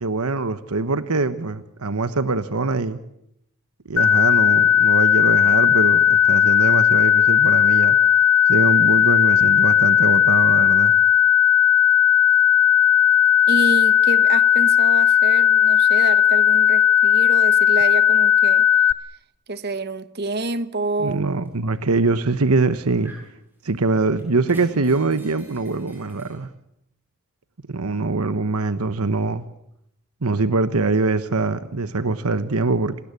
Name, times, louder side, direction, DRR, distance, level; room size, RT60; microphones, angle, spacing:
voice 1, 0.0-3.0 3.9-8.0 8.5-10.9 21.0-23.1 23.6-26.5 27.7-29.4 30.2-32.9, right 3 dB, 85° right, 1.1 m, -23 dB
sound 1, 4.0-18.9, left 8 dB, 65° left, 0.9 m, -16 dB
voice 2, 13.5-18.7 19.5-21.3, right 2 dB, 45° right, 1.2 m, -28 dB
sound 2, 21.4-21.5 22.5-23.3 23.7-26.4, equal, 10° right, 7.0 m, -48 dB
28.0 x 19.5 x 8.4 m
head